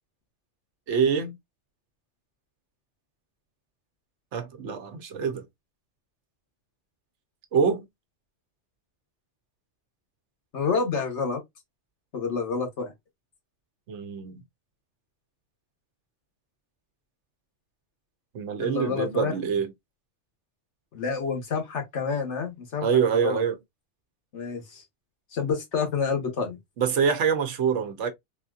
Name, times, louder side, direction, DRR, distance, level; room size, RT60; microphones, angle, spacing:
voice 1, 0.9-1.3 4.3-5.5 7.5-7.9 13.9-14.3 18.3-19.7 22.8-23.6 26.8-28.1, right 6 dB, 75° right, 1.0 m, -25 dB
voice 2, 10.5-11.4 12.1-12.9 18.6-19.3 20.9-22.9 23.1-23.4 24.3-24.8 25.3-26.6, left 5 dB, 70° left, 1.3 m, -28 dB
3.5 x 2.7 x 2.3 m
omnidirectional pair, 1.2 m